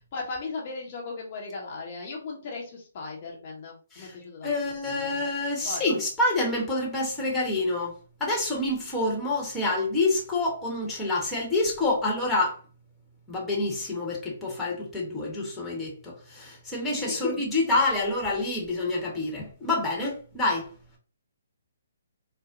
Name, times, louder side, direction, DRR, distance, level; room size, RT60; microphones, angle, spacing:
voice 1, 0.1-4.5 4.8-5.1 5.6-5.8 17.0-17.2, left 4 dB, 40° left, 0.8 m, -37 dB
voice 2, 4.4-7.9 8.2-12.6 13.3-20.7, left 2 dB, 10° left, 1.1 m, -27 dB
4.0 x 2.1 x 2.5 m
figure-of-eight pair, 135°, 0 cm